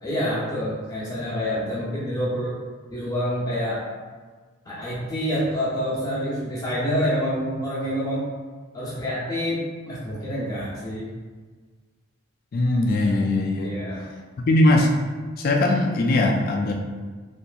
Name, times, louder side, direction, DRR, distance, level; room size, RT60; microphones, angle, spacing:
voice 1, 0.0-2.5 2.9-3.8 4.7-8.2 8.7-11.1 13.6-14.0, equal, 20° left, -9 dB, 0.8 m, -27 dB
voice 2, 12.5-13.7 14.4-14.9 15.4-16.7, left 2 dB, 45° left, 2 dB, 0.3 m, -20 dB
2.8 x 2.5 x 2.3 m, 1.4 s
head